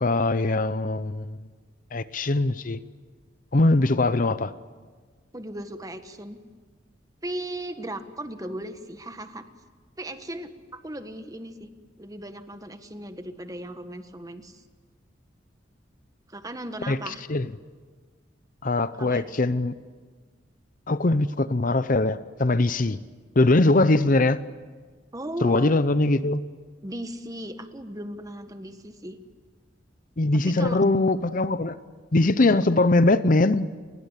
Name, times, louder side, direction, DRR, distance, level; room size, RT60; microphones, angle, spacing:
voice 1, 0.0-1.4 1.9-2.8 3.5-4.5 16.9-17.5 18.6-19.7 20.9-23.0 23.4-24.4 25.4-26.4 30.2-31.8 32.1-33.7, left 2 dB, 50° left, 14 dB, 0.7 m, -21 dB
voice 2, 5.3-6.4 7.2-9.5 10.0-11.7 12.0-14.6 16.3-17.2 19.0-19.6 25.1-25.7 26.8-29.2 30.5-30.8 32.4-32.6, right 1 dB, 20° right, 8 dB, 1.6 m, -37 dB
30.0 x 22.0 x 8.3 m, 1.5 s
head